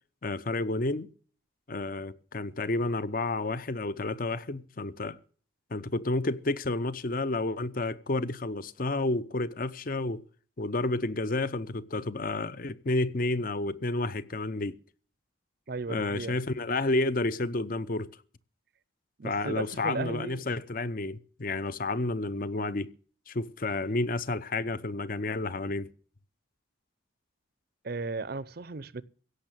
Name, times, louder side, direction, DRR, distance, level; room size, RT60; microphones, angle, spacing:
voice 1, 0.2-1.1 1.7-5.2 5.7-10.2 10.6-14.8 15.9-18.1 19.2-22.9 23.3-25.9, left 2 dB, 45° left, 0.7 m, -30 dB
voice 2, 15.7-16.4 19.2-20.4 27.8-29.0, right 3 dB, 50° right, 0.6 m, -35 dB
16.5 x 6.4 x 9.0 m
head